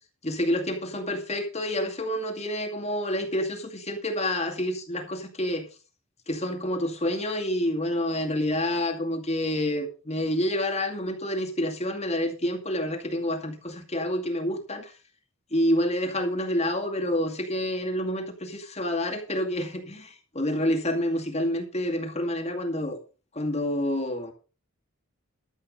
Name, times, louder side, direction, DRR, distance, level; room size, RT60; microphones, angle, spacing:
voice 1, 0.2-5.7 6.3-14.9 15.5-23.0 23.3-24.3, left 1 dB, 30° left, 2 dB, 2.3 m, -28 dB
13.0 x 8.3 x 5.4 m, 0.34 s
head